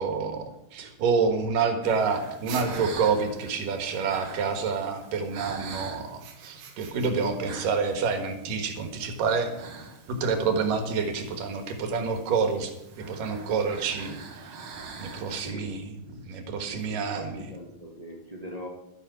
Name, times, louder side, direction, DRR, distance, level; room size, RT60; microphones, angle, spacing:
voice 1, 0.0-9.5 10.1-12.7 13.1-14.2 15.0-17.4, right 5 dB, 85° right, 6 dB, 3.2 m, -28 dB
sound 1, 1.8-15.5, right 4 dB, 50° right, 2.4 m, -44 dB
sound 2, 2.5-3.3 6.1-7.5, right 6 dB, 70° right, 2.9 m, -42 dB
voice 2, 15.1-15.7 16.7-18.7, equal, 20° right, 0 dB, 1.0 m, -42 dB
12.0 x 9.9 x 6.1 m, 0.84 s
omnidirectional pair, 3.8 m